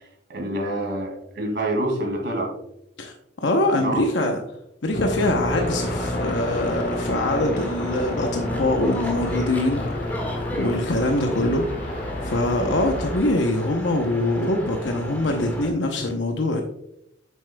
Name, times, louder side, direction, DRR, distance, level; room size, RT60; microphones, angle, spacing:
voice 1, 0.3-2.5 3.8-4.4, right 1 dB, 65° right, 1 dB, 2.3 m, -27 dB
voice 2, 3.0-4.4 4.8-10.1 10.5-11.9 12.2-16.6, left 1 dB, 70° left, 3 dB, 0.8 m, -23 dB
sound 1, 4.9-13.2, left 1 dB, 55° left, 2.7 m, -29 dB
sound 2, 5.5-15.7, equal, 10° left, 1.6 m, -35 dB
8.4 x 7.1 x 2.2 m, 0.79 s
head